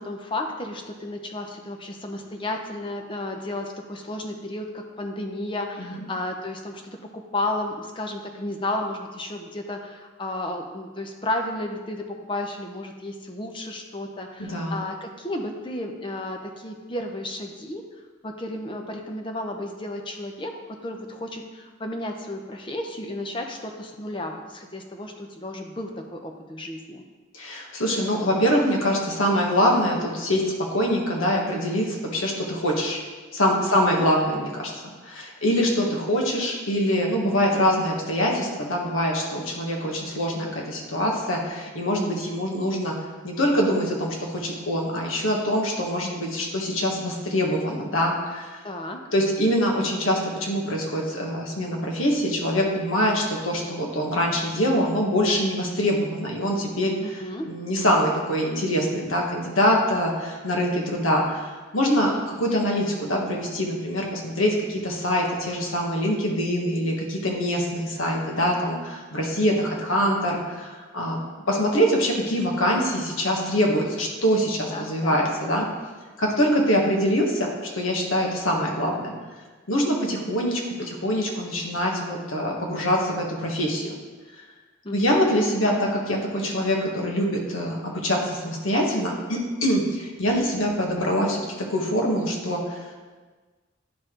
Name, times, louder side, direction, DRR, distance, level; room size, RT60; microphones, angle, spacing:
voice 1, 0.0-17.8 18.2-27.0 33.6-34.1 48.6-49.0 57.0-57.5 74.7-75.2 84.8-85.3, left 1 dB, 25° left, 3 dB, 0.6 m, -33 dB
voice 2, 14.4-14.8 27.3-30.4 30.7-33.0 33.3-34.7 35.0-42.9 43.2-48.6 49.1-56.9 57.4-71.2 71.5-75.7 76.2-79.1 79.7-83.9 84.9-92.8, equal, 90° left, -1 dB, 1.4 m, -24 dB
10.0 x 4.7 x 3.8 m, 1.3 s
head